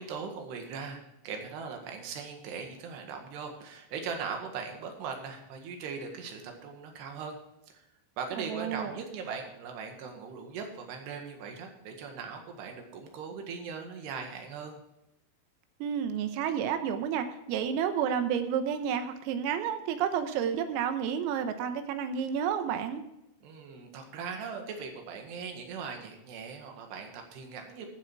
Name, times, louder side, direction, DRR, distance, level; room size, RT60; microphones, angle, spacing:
voice 1, 0.0-7.4 7.7-7.9 8.2-14.8 23.4-27.9, right 5 dB, 60° right, 3 dB, 3.4 m, -40 dB
voice 2, 8.3-8.9 15.8-23.0, right 8 dB, 85° right, 8 dB, 3.7 m, -30 dB
15.5 x 7.5 x 4.6 m, 0.89 s
omnidirectional pair, 6.0 m